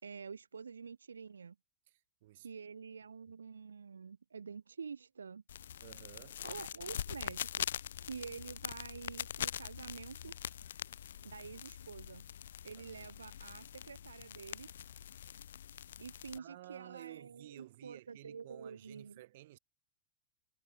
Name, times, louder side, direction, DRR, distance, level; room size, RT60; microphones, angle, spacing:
voice 1, 0.0-1.6 2.4-5.4 6.4-7.7 8.0-10.4 11.2-12.2 12.6-14.7 16.0-19.2, right 6 dB, 70° right, 4.4 m, -48 dB
voice 2, 1.9-2.5 5.8-6.4 12.8-13.1 16.3-19.6, right 16 dB, 55° right, 6.3 m, -54 dB
sound 1, 5.5-16.4, left 10 dB, 60° left, 0.9 m, -43 dB
figure-of-eight pair, 95°, 0 cm